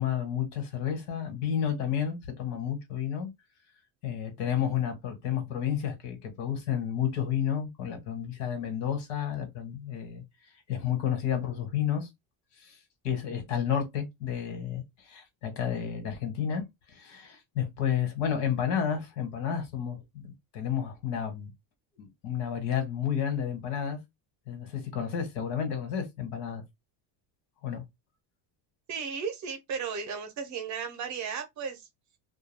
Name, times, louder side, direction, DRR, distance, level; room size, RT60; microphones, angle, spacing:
voice 1, 0.0-3.3 4.0-10.2 10.7-12.1 12.6-12.8 13.0-21.5 22.0-24.0 24.5-26.6 27.6-27.8, left 8 dB, 75° left, 1.2 m, -31 dB
voice 2, 28.9-31.9, right 6 dB, 35° right, 0.6 m, -35 dB
2.3 x 2.3 x 3.2 m
cardioid pair, 165°, 48 cm